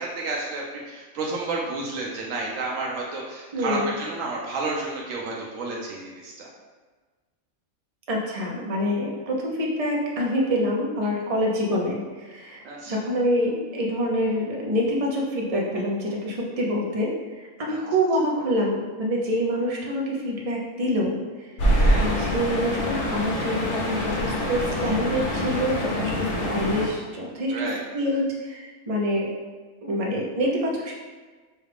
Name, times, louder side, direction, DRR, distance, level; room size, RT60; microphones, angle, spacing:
voice 1, 0.0-6.5 12.6-13.1 17.6-17.8 21.7-22.2 27.5-28.2, right 3 dB, 80° right, -3 dB, 1.0 m, -31 dB
voice 2, 3.5-4.0 8.1-21.5 22.0-27.7 27.9-29.3 29.8-30.9, equal, 35° right, -3 dB, 0.7 m, -26 dB
sound 1, 21.6-26.9, equal, 65° left, 1.1 m, -25 dB
5.4 x 2.3 x 3.4 m, 1.4 s
omnidirectional pair, 1.4 m